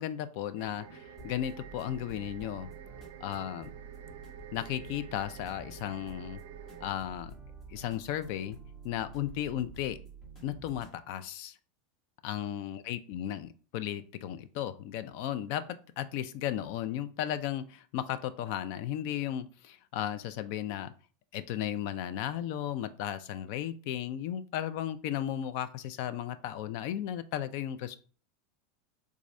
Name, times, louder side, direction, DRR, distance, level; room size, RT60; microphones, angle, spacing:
voice 1, 0.0-2.7 3.2-3.7 4.5-6.4 6.8-7.3 7.7-8.6 8.8-10.0 10.4-11.6 12.2-20.9 21.3-28.0, left 11 dB, 50° left, 14 dB, 0.3 m, -35 dB
sound 1, 0.6-6.9, right 9 dB, 80° right, 0.4 m, -49 dB
sound 2, 1.2-11.0, right 4 dB, 30° left, 1.1 m, -49 dB
3.5 x 2.5 x 3.1 m, 0.39 s
supercardioid pair, 165°, 0 cm